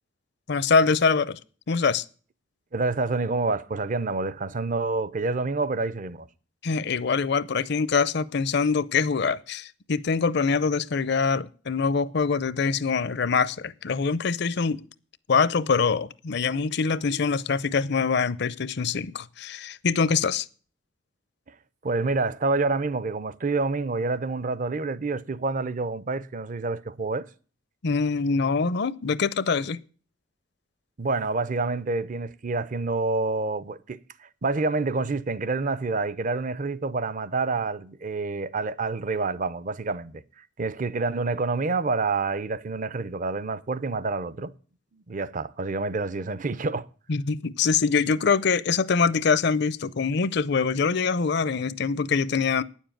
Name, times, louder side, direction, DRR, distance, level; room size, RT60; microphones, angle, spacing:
voice 1, 0.5-1.4 1.7-2.0 6.6-14.8 15.3-20.5 27.8-29.8 47.1-52.6, left 5 dB, 60° left, 0.6 m, -24 dB
voice 2, 2.7-6.3 21.5-21.6 21.8-27.3 31.0-44.5 44.9-46.9, right 3 dB, 40° right, 0.5 m, -28 dB
9.7 x 7.3 x 8.8 m
head